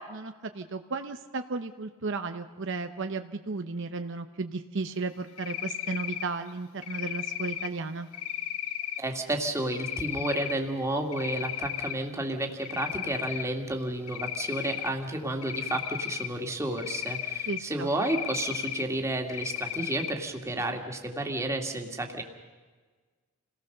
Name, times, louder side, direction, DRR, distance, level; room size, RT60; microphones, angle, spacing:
voice 1, 0.0-8.1 17.5-17.9, right 3 dB, 60° right, 7 dB, 0.8 m, -34 dB
Cricket, 5.4-6.3 6.8-7.7 8.1-9.0 9.7-10.5 11.0-11.9 12.3-13.5 14.1-14.9 15.4-16.3 16.8-17.6 18.0-18.8 19.3-20.1, left 11 dB, 90° left, 1.0 m, -34 dB
voice 2, 9.0-22.2, right 1 dB, 15° right, 3 dB, 2.1 m, -31 dB
28.5 x 18.5 x 6.7 m, 1.4 s
head